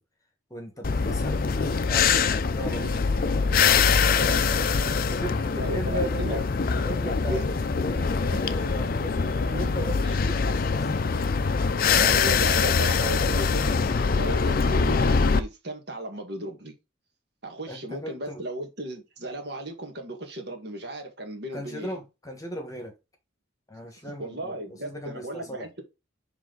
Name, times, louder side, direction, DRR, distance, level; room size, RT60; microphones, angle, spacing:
voice 1, 0.5-4.4 5.1-6.5 6.7-10.9 11.8-12.4 17.7-18.4 21.5-22.9 23.7-25.7, equal, 15° left, 1.4 m, -38 dB
sound 1, 0.8-15.4, left 5 dB, 45° left, 0.5 m, -23 dB
voice 2, 2.6-3.0 4.2-4.6 5.6-6.4 7.2-7.7 8.2-8.4 9.5-10.2 11.9-16.7 17.4-22.0 24.2-25.8, right 1 dB, 55° right, 1.6 m, -36 dB
7.5 x 3.5 x 3.8 m
head